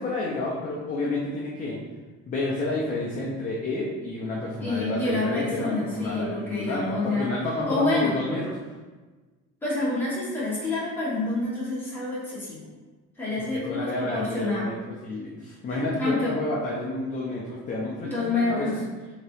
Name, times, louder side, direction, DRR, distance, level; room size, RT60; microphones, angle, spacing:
voice 1, 0.0-1.8 2.3-8.5 13.5-18.8, left 2 dB, 25° left, -4 dB, 0.6 m, -30 dB
voice 2, 4.6-7.3 7.7-8.2 9.6-12.6 13.2-14.7 16.0-16.3 18.1-18.8, left 2 dB, 5° left, -9 dB, 1.5 m, -28 dB
3.5 x 2.9 x 3.4 m, 1.3 s
cardioid pair, 140°, 29 cm